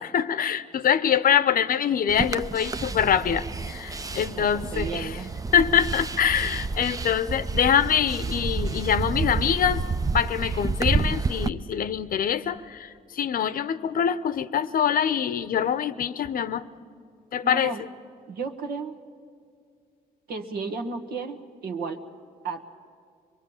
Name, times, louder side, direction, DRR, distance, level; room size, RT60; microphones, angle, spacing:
voice 1, 0.0-5.2 5.5-9.8 10.1-16.6 17.3-17.7, left 8 dB, 60° left, 14 dB, 0.8 m, -24 dB
sound 1, 2.1-11.5, right 4 dB, 20° right, 0.6 m, -29 dB
voice 2, 4.3-5.4 17.4-17.8 18.3-18.9 20.3-22.0 22.4-22.7, right 4 dB, 70° right, 4 dB, 1.4 m, -33 dB
23.5 x 22.5 x 7.2 m, 2.3 s
cardioid pair, 75°, 17 cm